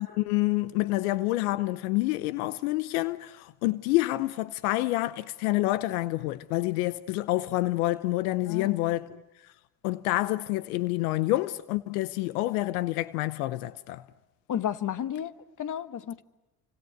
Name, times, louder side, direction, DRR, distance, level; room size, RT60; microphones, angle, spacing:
voice 1, 0.0-9.2 9.8-14.0, left 18 dB, 85° left, 0.9 m, -28 dB
voice 2, 8.5-9.0 14.5-16.2, left 10 dB, 45° left, 1.5 m, -33 dB
29.5 x 25.5 x 8.0 m
supercardioid pair, 75°, 43 cm